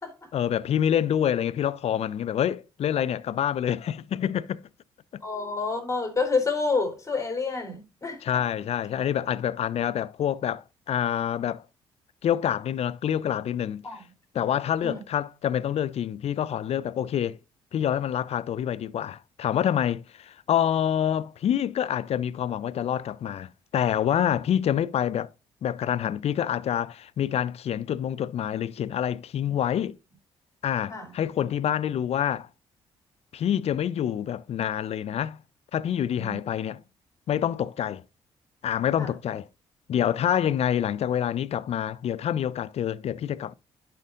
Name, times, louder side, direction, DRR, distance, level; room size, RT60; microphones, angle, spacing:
voice 1, 0.3-4.6 8.2-11.6 12.2-13.8 14.3-17.4 17.7-25.3 25.6-30.0 30.6-32.5 33.3-35.4 35.7-36.8 37.3-38.0 38.6-39.5 39.9-43.5, left 10 dB, 55° left, 0.4 m, -27 dB
voice 2, 5.2-8.2 13.8-14.0 14.8-15.0 30.9-31.1 36.2-36.4 39.0-39.1, left 4 dB, 25° left, 3.5 m, -28 dB
10.5 x 5.7 x 2.5 m
hypercardioid pair, 50°, 13 cm